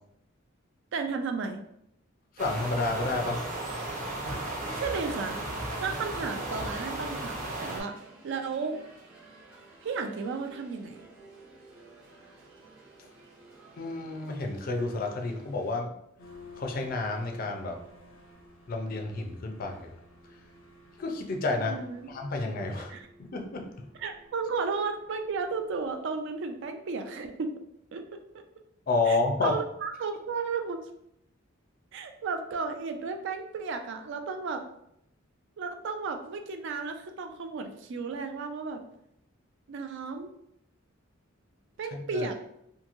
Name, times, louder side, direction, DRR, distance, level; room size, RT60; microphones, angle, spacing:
voice 1, 0.9-1.6 4.7-5.4 5.8-7.9 8.2-8.8 9.8-11.0 21.7-22.1 22.9-23.1 24.0-27.5 27.9-28.0 28.3-28.4 29.1-30.8 31.9-34.6 35.6-38.8 39.7-40.3 41.8-42.4, right 4 dB, 60° right, 6 dB, 0.3 m, -33 dB
voice 2, 2.3-3.5 13.0-13.1 13.8-15.9 16.6-17.8 18.7-19.9 21.0-21.8 22.1-23.9 28.9-29.6 41.9-42.3, left 3 dB, 45° left, 3 dB, 0.4 m, -30 dB
sound 1, 2.4-7.8, right 1 dB, 40° right, 0.7 m, -35 dB
sound 2, 6.5-15.7, right 3 dB, 85° right, 0.8 m, -53 dB
sound 3, 16.2-26.1, left 2 dB, 90° left, 0.7 m, -54 dB
2.9 x 2.6 x 2.5 m, 0.76 s
head